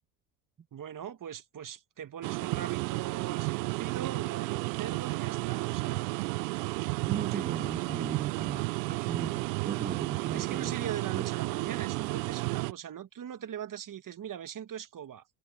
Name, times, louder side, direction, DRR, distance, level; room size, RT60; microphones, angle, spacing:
voice 1, 0.7-6.1 10.3-15.2, right 9 dB, 40° right, 1.8 m, -41 dB
sound 1, 2.2-12.7, right 27 dB, 80° right, 0.6 m, -32 dB
voice 2, 7.1-10.7 11.1-11.3, right 7 dB, 20° right, 0.4 m, -36 dB
hypercardioid pair, 70°, 49 cm